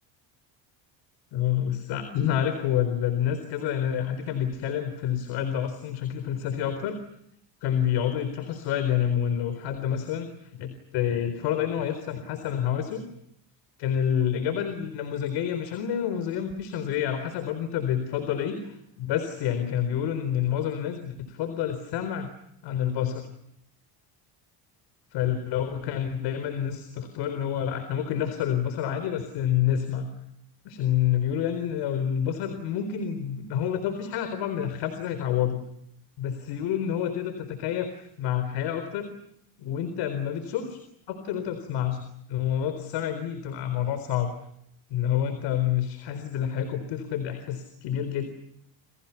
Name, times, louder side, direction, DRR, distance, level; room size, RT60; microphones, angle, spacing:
voice 1, 1.3-7.0 7.6-13.0 13.8-22.3 22.6-23.3 25.1-30.1 30.7-35.6 36.2-39.1 39.6-40.8 41.1-42.0 42.3-44.3 44.9-48.2, left 9 dB, 75° left, 9 dB, 4.2 m, -28 dB
30.0 x 29.5 x 5.9 m, 0.75 s
cardioid pair, 130°, 42 cm